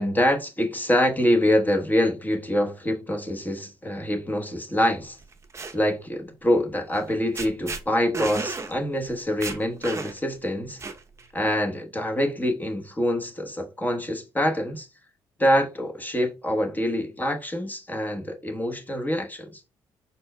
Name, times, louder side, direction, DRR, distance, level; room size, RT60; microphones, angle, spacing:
voice 1, 0.0-5.2 5.7-10.8 11.3-14.9 15.4-19.8, equal, 15° left, 1.1 m, -25 dB
sound 1, 5.2-5.7 7.0-7.1 7.3-7.8 8.1-8.7 9.1-9.2 9.4-10.3 10.8-11.3, right 4 dB, 30° right, 0.7 m, -32 dB
5.4 x 4.2 x 2.2 m
supercardioid pair, 75°, 10 cm